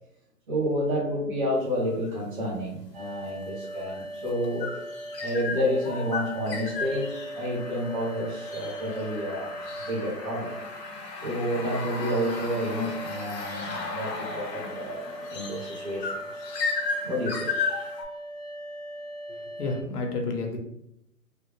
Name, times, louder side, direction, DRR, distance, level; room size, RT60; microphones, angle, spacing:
voice 1, 0.5-4.7 5.2-9.5 9.8-10.5 11.2-15.0 15.3-16.1 17.0-17.5, equal, 30° right, -7 dB, 0.9 m, -30 dB
sound 1, 1.8-2.1 3.2-18.0, left 4 dB, 90° left, 1.2 m, -35 dB
sound 2, 2.9-19.8, right 1 dB, 20° left, 0.5 m, -40 dB
voice 2, 19.3-20.6, left 3 dB, 65° left, 3 dB, 1.0 m, -31 dB
3.4 x 2.3 x 3.1 m, 0.78 s
hypercardioid pair, 165°, 49 cm